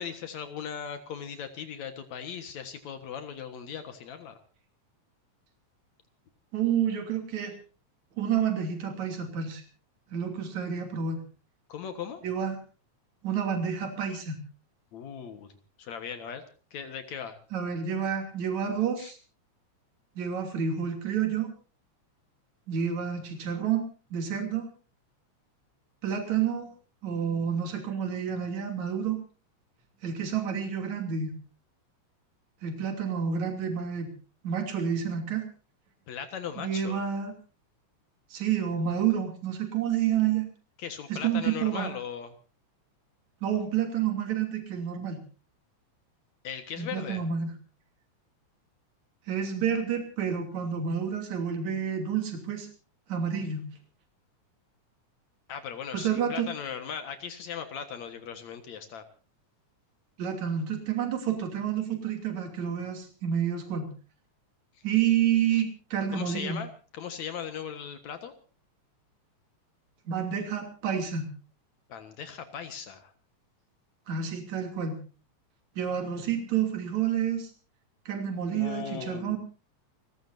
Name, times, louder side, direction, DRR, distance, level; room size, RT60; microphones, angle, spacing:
voice 1, 0.0-4.4 11.7-12.2 14.9-15.5 15.8-16.4 16.7-17.4 19.0-19.1 36.1-37.0 40.8-42.3 46.4-47.2 55.5-59.0 65.5-65.6 66.1-68.3 71.9-73.1 78.5-79.4, left 7 dB, 75° left, 8 dB, 2.8 m, -38 dB
voice 2, 6.5-7.6 8.2-9.6 10.1-11.2 12.2-12.6 13.2-14.4 17.5-19.2 20.2-21.5 22.7-23.8 24.1-24.7 26.0-26.7 27.0-29.2 30.0-31.3 32.6-34.1 34.4-35.5 36.6-37.3 38.3-40.4 41.1-41.9 43.4-45.2 46.8-47.5 49.3-52.7 53.1-53.7 55.9-56.5 60.2-63.9 64.8-66.6 70.1-71.3 74.1-75.0 75.8-77.5 78.1-79.4, right 8 dB, 75° right, 4 dB, 4.2 m, -29 dB
29.5 x 15.5 x 2.7 m, 0.36 s
omnidirectional pair, 3.3 m